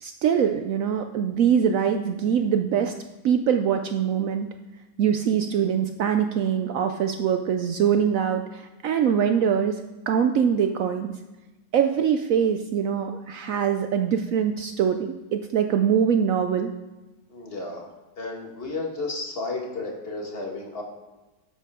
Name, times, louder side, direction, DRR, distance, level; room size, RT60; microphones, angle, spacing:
voice 1, 0.0-2.9 3.2-4.5 5.0-9.8 10.1-11.2 11.7-16.7, right 8 dB, 75° right, 7 dB, 0.7 m, -23 dB
voice 2, 17.3-17.9 18.2-20.8, left 3 dB, 35° left, 0 dB, 1.6 m, -32 dB
10.5 x 7.4 x 3.6 m, 1.1 s
omnidirectional pair, 1.9 m